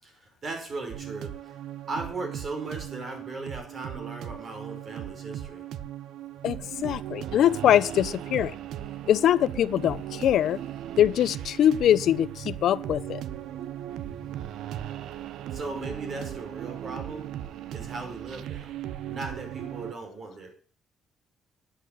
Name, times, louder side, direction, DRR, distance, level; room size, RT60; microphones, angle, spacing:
voice 1, 0.0-1.6 1.9-5.7 15.5-17.3 17.7-18.7 19.0-20.5, right 3 dB, 50° right, 5.1 m, -37 dB
sound 1, 0.9-19.9, right 11 dB, 85° right, 0.7 m, -37 dB
voice 2, 6.4-8.5 9.1-10.6 11.0-13.2, left 11 dB, 75° left, 0.7 m, -23 dB
10.5 x 7.9 x 8.3 m
cardioid pair, 90°, 0 cm